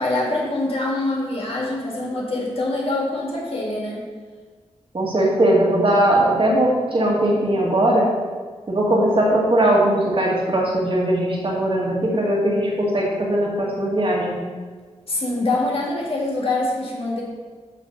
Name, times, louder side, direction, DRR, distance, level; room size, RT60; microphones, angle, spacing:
voice 1, 0.0-4.0 15.1-17.2, left 2 dB, 55° left, -3 dB, 1.8 m, -24 dB
voice 2, 4.9-8.1 8.7-14.4, right 1 dB, 50° right, -3 dB, 2.0 m, -19 dB
8.3 x 3.4 x 6.4 m, 1.5 s
cardioid pair, 60°, 12 cm